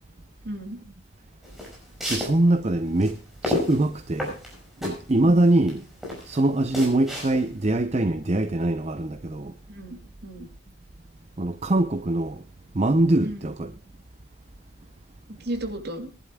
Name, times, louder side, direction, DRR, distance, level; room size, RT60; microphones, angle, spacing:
voice 1, 0.4-0.8 5.2-5.5 9.7-10.0 10.2-10.5 13.2-13.5 15.4-16.1, right 1 dB, 50° right, 2.5 m, -33 dB
sound 1, 1.4-7.7, left 1 dB, ahead, 5.7 m, -32 dB
voice 2, 2.1-4.3 4.8-5.8 6.3-9.5 11.4-12.4 12.7-13.7, right 1 dB, 30° right, 0.6 m, -23 dB
22.5 x 11.5 x 2.3 m
head